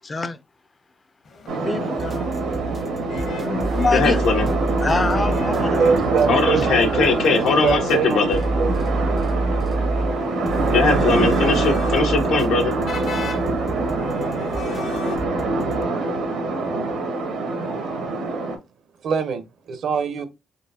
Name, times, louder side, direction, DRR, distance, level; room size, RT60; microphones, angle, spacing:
voice 1, 0.0-0.4 1.6-2.3 3.3-4.2 4.8-5.8 6.8-6.9, left 3 dB, 30° left, 0.4 m, -25 dB
sound 1, 1.2-15.2, left 5 dB, 60° left, 1.1 m, -40 dB
sound 2, 1.5-18.6, right 2 dB, 90° right, 1.2 m, -24 dB
sound 3, 2.0-15.8, right 3 dB, 30° right, 0.4 m, -28 dB
voice 2, 3.9-4.5 6.3-8.4 10.7-12.7, left 4 dB, 80° left, 0.9 m, -20 dB
voice 3, 5.8-7.1 7.3-8.9 19.0-20.3, right 6 dB, 65° right, 0.7 m, -24 dB
3.9 x 3.1 x 2.7 m
cardioid pair, 90°, 0 cm